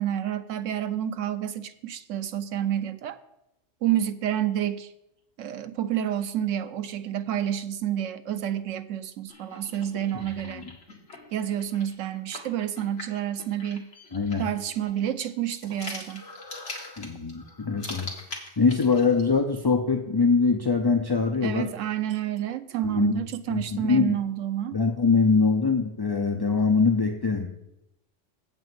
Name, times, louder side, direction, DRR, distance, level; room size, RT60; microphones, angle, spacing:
voice 1, 0.0-3.2 3.8-4.9 5.4-10.7 11.3-13.9 14.4-16.3 21.4-24.8, right 11 dB, 90° right, 1.0 m, -29 dB
sound 1, 9.3-19.3, left 2 dB, 65° left, 2.0 m, -43 dB
voice 2, 14.1-14.5 17.0-18.1 18.6-21.7 22.8-23.2 23.5-24.2 24.7-27.5, left 4 dB, 30° left, 0.4 m, -23 dB
8.2 x 5.5 x 7.5 m
omnidirectional pair, 1.3 m